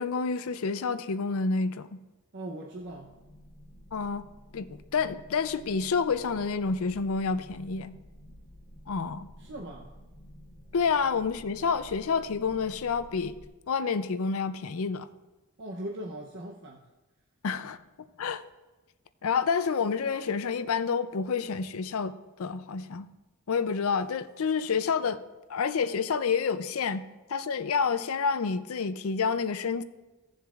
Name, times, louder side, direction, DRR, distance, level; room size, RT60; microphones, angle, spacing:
voice 1, 0.0-2.0 3.9-4.3 4.5-7.9 8.9-9.3 10.7-13.4 13.7-15.1 17.4-17.8 18.2-18.4 19.2-23.1 23.5-25.2 25.5-27.0 27.3-29.8, left 5 dB, 65° left, 12 dB, 0.5 m, -29 dB
voice 2, 2.3-3.2 9.4-10.0 15.6-16.9, right 1 dB, 55° right, 0 dB, 0.8 m, -40 dB
sound 1, 2.7-13.5, equal, 30° left, 3.2 m, -51 dB
16.5 x 7.1 x 2.4 m, 1.1 s
head